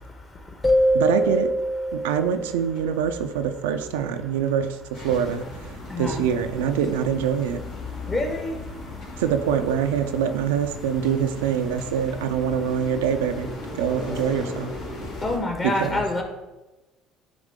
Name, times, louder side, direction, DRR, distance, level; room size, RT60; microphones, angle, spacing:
sound 1, 0.6-3.3, equal, 15° left, 0.8 m, -24 dB
voice 1, 0.9-1.5 1.9-4.8 5.0-5.4 6.0-7.6 9.2-13.5 13.7-14.7 15.8-16.0, right 8 dB, 90° right, 7 dB, 0.4 m, -24 dB
sound 2, 4.9-15.4, left 2 dB, 65° left, 2.1 m, -37 dB
voice 2, 5.9-6.2 8.1-8.6 15.2-16.2, left 2 dB, 30° left, 3 dB, 1.4 m, -26 dB
8.9 x 3.1 x 3.7 m, 1.1 s
supercardioid pair, 75°, 0 cm